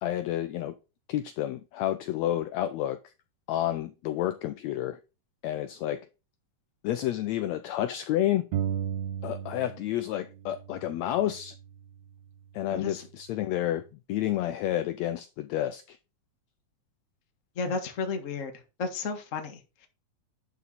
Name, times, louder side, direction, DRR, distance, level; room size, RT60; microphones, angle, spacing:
voice 1, 0.0-0.7 1.1-3.1 3.5-5.0 5.4-6.0 6.8-8.5 9.2-11.5 12.5-16.0, left 12 dB, 80° left, 1.6 m, -30 dB
sound 1, 8.5-10.0 10.3-12.1, right 9 dB, 70° right, 1.7 m, -35 dB
voice 2, 12.7-13.1 17.5-18.5 18.8-19.9, left 4 dB, 35° left, 1.3 m, -33 dB
11.0 x 4.9 x 4.1 m
omnidirectional pair, 3.5 m